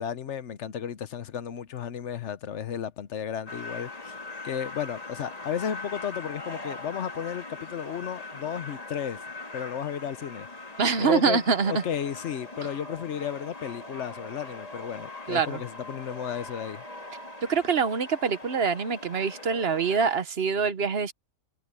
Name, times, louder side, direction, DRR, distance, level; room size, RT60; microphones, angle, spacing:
voice 1, 0.0-9.2 9.5-10.5 11.0-11.4 11.6-16.8, left 8 dB, 60° left, 1.1 m, -33 dB
sound 1, 3.5-20.2, left 2 dB, 30° left, 1.8 m, -41 dB
voice 2, 10.8-11.8 15.3-15.6 17.5-21.1, right 6 dB, 50° right, 1.1 m, -25 dB
omnidirectional pair, 1.4 m